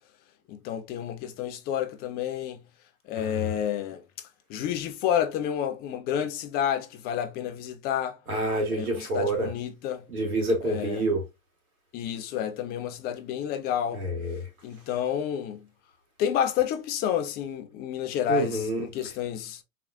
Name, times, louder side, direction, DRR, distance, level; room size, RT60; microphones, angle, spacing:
voice 1, 0.5-2.6 3.1-4.0 4.5-8.2 8.7-10.0 10.6-11.0 11.9-14.1 14.6-15.7 16.2-19.6, left 9 dB, 25° left, 0.5 m, -30 dB
voice 2, 3.2-3.5 8.3-9.5 10.1-11.2 13.9-14.4 18.3-18.9, right 1 dB, 85° right, 2.5 m, -27 dB
3.9 x 3.1 x 2.6 m
hypercardioid pair, 120°, 42 cm